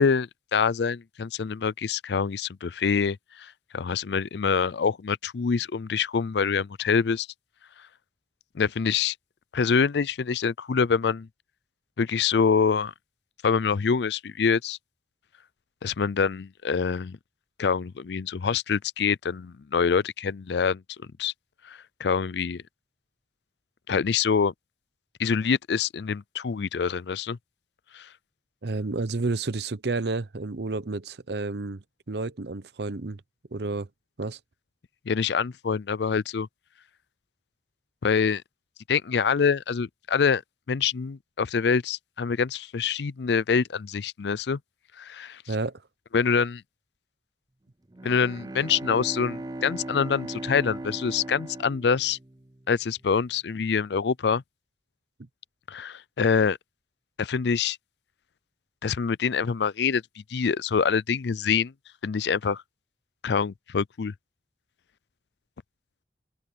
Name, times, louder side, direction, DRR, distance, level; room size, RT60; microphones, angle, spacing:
voice 1, 0.0-7.3 8.5-9.1 9.5-11.3 12.0-12.9 13.4-14.8 15.8-17.2 17.6-20.8 21.2-21.3 21.6-22.6 23.9-24.5 25.2-27.4 27.9-28.1 35.1-36.5 38.0-38.4 38.9-40.4 40.7-44.6 45.0-45.4 46.1-46.6 48.0-52.2 52.7-54.4 55.7-56.6 57.2-57.8 58.8-60.0 60.3-61.7 62.0-62.6 63.2-64.1, left 6 dB, 75° left, 0.4 m, -25 dB
voice 2, 28.6-33.2 33.5-33.9 34.2-34.4 45.5-45.8, right 3 dB, 70° right, 0.8 m, -30 dB
Bowed string instrument, 47.9-52.8, right 1 dB, 20° right, 0.6 m, -38 dB
head